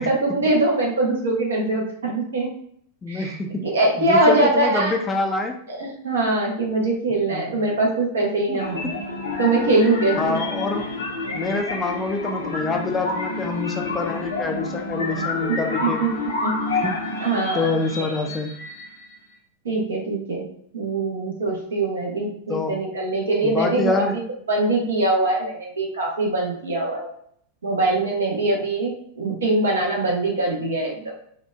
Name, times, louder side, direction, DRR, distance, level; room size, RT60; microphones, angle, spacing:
voice 1, 0.0-2.5 3.1-4.9 5.7-8.9 9.4-10.4 15.5-16.5 17.2-18.1 19.6-20.4 20.7-24.2 24.5-27.1 27.6-31.1, right 2 dB, 70° right, -2 dB, 0.9 m, -23 dB
voice 2, 3.0-3.7 4.0-5.6 7.3-7.6 8.5-9.0 10.2-10.9 11.3-16.0 16.7-17.1 17.5-18.5 22.5-22.8 23.4-24.2, left 3 dB, 20° left, 4 dB, 0.4 m, -26 dB
sound 1, 8.6-19.2, left 2 dB, 70° left, 0.6 m, -29 dB
3.8 x 2.4 x 2.3 m, 0.65 s
figure-of-eight pair, 90°, 0 cm